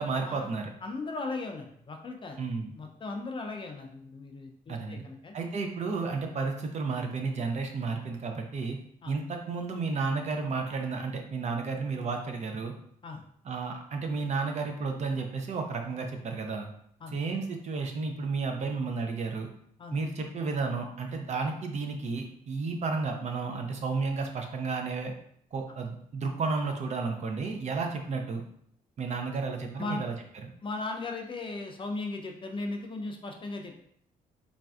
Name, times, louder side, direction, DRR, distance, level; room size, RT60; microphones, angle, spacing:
voice 1, 0.0-0.7 2.4-2.7 4.7-5.0 5.3-8.8 9.1-12.7 13.4-16.7 17.1-19.5 19.9-25.1 25.5-28.4 29.0-30.1, right 4 dB, 50° right, 3 dB, 0.5 m, -32 dB
voice 2, 0.8-2.4 2.8-5.3 9.0-9.1 13.0-13.2 17.0-17.2 19.8-20.0 29.3-29.4 29.8-30.0 30.6-33.8, left 3 dB, 35° left, 3 dB, 0.5 m, -37 dB
3.2 x 2.5 x 2.3 m, 0.66 s
cardioid pair, 95°, 16 cm